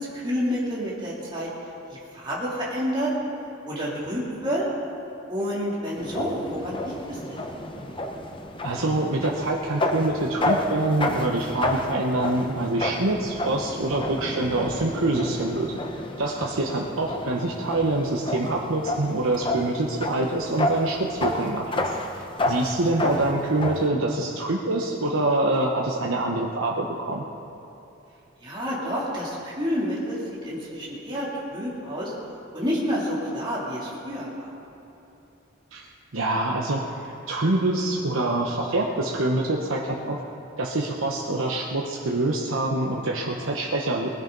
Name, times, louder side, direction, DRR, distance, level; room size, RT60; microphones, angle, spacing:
voice 1, 0.0-1.5 1.9-3.1 3.6-4.6 5.3-7.5 28.4-32.1 32.5-34.5, equal, 20° right, -7 dB, 3.1 m, -29 dB
sound 1, 6.0-23.9, left 1 dB, 25° left, 1.0 m, -30 dB
voice 2, 8.6-15.7 16.2-27.2 35.7-36.8 37.3-40.2 40.6-44.1, right 2 dB, 80° right, -1 dB, 1.1 m, -25 dB
20.0 x 15.5 x 4.0 m, 3.0 s
head